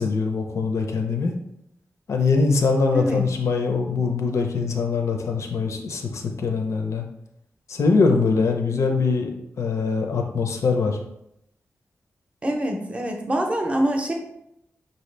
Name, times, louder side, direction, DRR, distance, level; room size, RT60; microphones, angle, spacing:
voice 1, 0.0-1.3 2.1-7.0 7.7-9.3 9.6-11.0, left 4 dB, 75° left, 3 dB, 0.6 m, -22 dB
voice 2, 12.4-14.1, right 1 dB, 25° right, 2 dB, 0.6 m, -25 dB
5.6 x 2.8 x 3.2 m, 0.80 s
wide cardioid pair, 170°, 5 cm